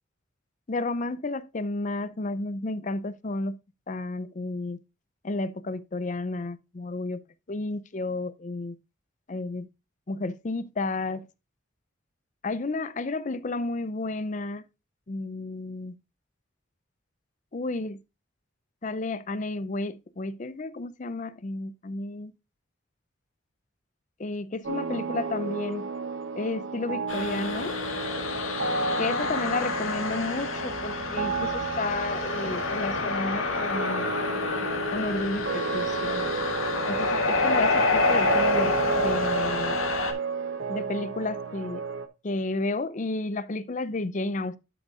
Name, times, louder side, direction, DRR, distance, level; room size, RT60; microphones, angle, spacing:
voice 1, 0.7-3.6 3.9-4.8 5.2-7.2 7.5-8.8 9.3-9.7 10.1-11.3 12.4-14.6 15.1-16.0 17.5-18.0 18.8-22.3 24.2-25.9 26.4-27.8 29.0-34.1 34.9-36.3 36.9-39.8 40.7-41.8 42.2-44.6, left 2 dB, 40° left, 0.5 m, -32 dB
sound 1, 24.6-42.1, right 4 dB, 65° right, 0.8 m, -32 dB
sound 2, 27.1-40.1, left 3 dB, 85° left, 1.8 m, -28 dB
11.5 x 6.2 x 2.5 m
head